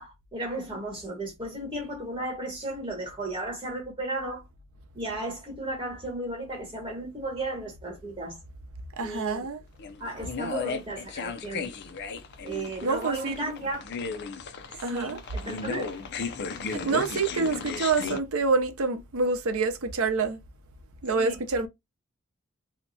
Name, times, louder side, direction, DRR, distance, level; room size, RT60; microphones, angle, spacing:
voice 1, 0.0-4.4 4.9-8.4 9.0-9.5 10.0-11.7 12.4-13.8 14.9-15.9 21.1-21.4, right 1 dB, 20° right, 1.0 m, -34 dB
voice 2, 9.0-9.6 12.8-13.5 14.8-15.2 16.7-20.4 21.0-21.7, right 4 dB, 80° right, 0.7 m, -27 dB
sound 1, 9.8-18.2, left 4 dB, 50° left, 0.5 m, -35 dB
2.8 x 2.2 x 4.0 m
head